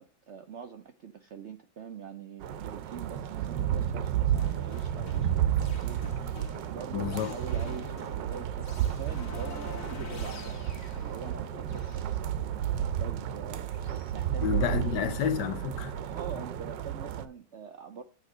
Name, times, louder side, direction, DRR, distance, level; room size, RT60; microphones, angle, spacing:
voice 1, 0.0-14.9 16.0-18.0, right 7 dB, 65° right, 0.7 m, -44 dB
sound 1, 2.4-17.2, right 10 dB, 90° right, 1.3 m, -32 dB
sound 2, 4.4-14.1, left 1 dB, 50° left, 1.7 m, -45 dB
voice 2, 6.9-7.4 14.4-16.0, left 9 dB, 75° left, 1.4 m, -30 dB
8.4 x 3.8 x 6.0 m
omnidirectional pair, 1.9 m